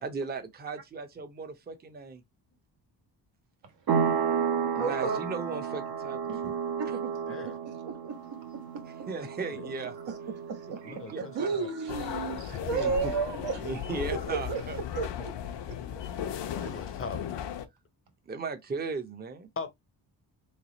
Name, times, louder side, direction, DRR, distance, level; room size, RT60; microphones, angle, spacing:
voice 1, 0.0-2.2 4.7-6.6 9.1-10.0 10.9-11.5 12.5-13.1 13.6-14.8 16.5-16.7 18.3-19.5, right 4 dB, 25° right, 0.6 m, -37 dB
sound 1, 3.9-12.2, right 7 dB, 55° right, 0.9 m, -32 dB
voice 2, 4.7-5.2 6.3-6.5 6.9-7.1 7.4-8.1 10.0-10.2 10.5-13.9 14.2-15.3 16.6-16.8, right 5 dB, 85° right, 1.6 m, -34 dB
voice 3, 10.8-11.7 16.5-17.2 19.6-19.7, left 4 dB, 30° left, 0.6 m, -39 dB
sound 2, 11.9-17.6, left 9 dB, 80° left, 0.7 m, -36 dB
3.3 x 3.2 x 3.9 m
wide cardioid pair, 165°, 43 cm